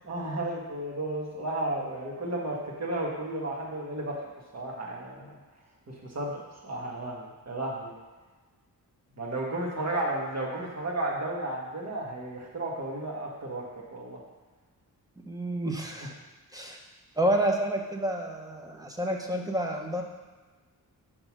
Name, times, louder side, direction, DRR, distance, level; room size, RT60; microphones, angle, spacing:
voice 1, 0.0-4.2 4.5-5.4 5.9-7.9 9.2-13.6 13.9-14.2, right 1 dB, 45° right, -2 dB, 1.5 m, -33 dB
voice 2, 15.3-16.2 16.5-16.8 17.2-20.0, right 1 dB, 10° right, 1 dB, 0.8 m, -29 dB
6.6 x 3.9 x 6.0 m, 1.3 s
wide cardioid pair, 145°, 36 cm